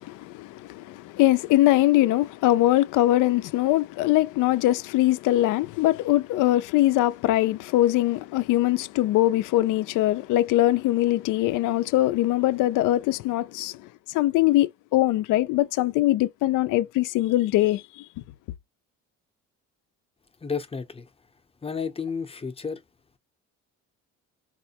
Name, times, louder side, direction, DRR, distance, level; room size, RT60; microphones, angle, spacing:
voice 1, 0.0-13.8 14.1-18.0, left 15 dB, 70° left, 0.4 m, -22 dB
voice 2, 20.4-21.1 21.6-22.8, left 5 dB, 20° left, 0.7 m, -31 dB
4.2 x 2.1 x 2.8 m
supercardioid pair, 85°, 32 cm